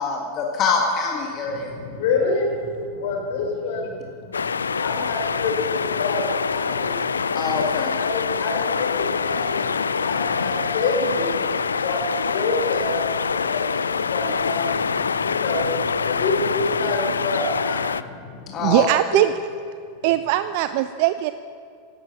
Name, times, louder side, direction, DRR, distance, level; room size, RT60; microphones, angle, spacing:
voice 1, 0.0-1.7 7.3-7.9 18.5-18.9, left 5 dB, 30° left, 0 dB, 1.8 m, -24 dB
voice 2, 1.5-2.6 2.9-7.5 8.0-18.8 19.1-19.2, left 3 dB, 50° left, 1 dB, 3.7 m, -28 dB
sound 1, 4.3-18.0, left 5 dB, 75° left, 0.4 m, -25 dB
voice 3, 18.6-19.3 20.0-21.3, right 15 dB, 45° right, 12 dB, 0.4 m, -20 dB
16.0 x 12.0 x 5.8 m, 2.3 s
figure-of-eight pair, 90°, 0 cm